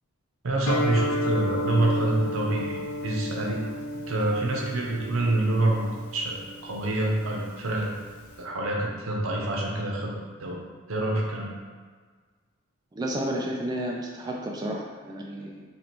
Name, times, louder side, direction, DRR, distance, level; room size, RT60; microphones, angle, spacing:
voice 1, 0.4-3.6 3.9-5.9 6.1-7.9 8.4-10.6 10.9-11.6, right 2 dB, 80° right, -2 dB, 0.8 m, -27 dB
Guitar, 0.7-8.4, left 1 dB, 85° left, 0.5 m, -32 dB
voice 2, 12.9-15.6, right 1 dB, 20° right, -1 dB, 0.3 m, -31 dB
3.0 x 2.7 x 4.5 m, 1.5 s
head